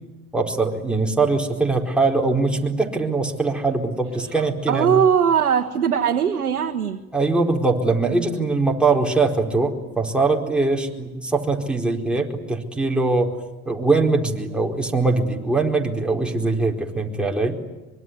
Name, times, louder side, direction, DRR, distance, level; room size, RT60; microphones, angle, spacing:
voice 1, 0.3-5.0 7.1-13.3 13.7-17.6, right 3 dB, ahead, 0 dB, 4.5 m, -22 dB
voice 2, 4.3-7.0, right 8 dB, 90° right, 3 dB, 1.5 m, -20 dB
24.5 x 23.5 x 9.5 m, 1.1 s
hypercardioid pair, 85°, 43 cm